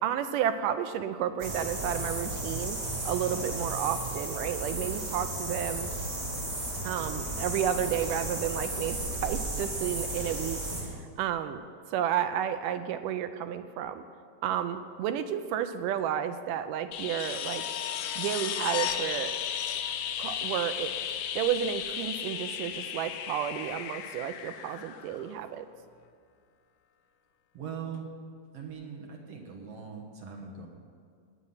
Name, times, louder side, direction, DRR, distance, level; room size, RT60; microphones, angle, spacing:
voice 1, 0.0-2.8 3.0-5.9 6.8-11.6 11.9-14.0 14.4-17.6 18.2-19.4 20.2-20.9 21.4-25.7, right 9 dB, 80° right, 9 dB, 2.1 m, -31 dB
sound 1, 1.4-10.8, right 2 dB, 30° right, 3.7 m, -34 dB
sound 2, 16.9-25.6 27.9-28.0, left 9 dB, 80° left, 2.4 m, -34 dB
voice 2, 27.5-28.1 28.5-30.7, right 6 dB, 55° right, 0 dB, 2.2 m, -41 dB
19.5 x 8.5 x 5.6 m, 2.2 s
omnidirectional pair, 3.9 m